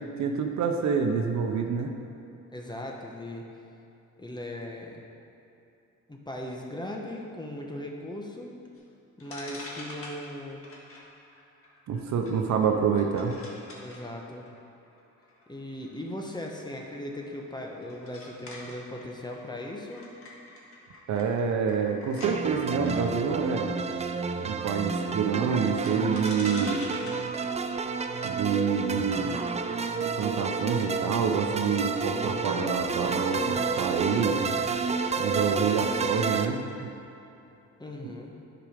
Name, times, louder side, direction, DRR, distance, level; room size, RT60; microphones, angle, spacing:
voice 1, 0.2-1.9 11.9-13.3 21.1-23.8 24.4-26.8 28.2-29.3 30.0-34.5 35.2-36.9 38.0-38.1, right 6 dB, 65° right, 4 dB, 0.9 m, -27 dB
voice 2, 2.5-3.5 4.2-5.0 6.1-8.5 9.2-10.6 13.8-14.4 15.5-20.0 37.8-38.3, left 1 dB, 15° left, 0 dB, 1.2 m, -38 dB
sound 1, 8.8-8.9 9.2-22.3 22.8-22.9 25.8-28.6, left 2 dB, 45° left, 1.7 m, -46 dB
sound 2, 22.2-36.5, right 5 dB, 25° right, 0.4 m, -30 dB
9.7 x 5.1 x 5.1 m, 2.9 s
cardioid pair, 90°, 30 cm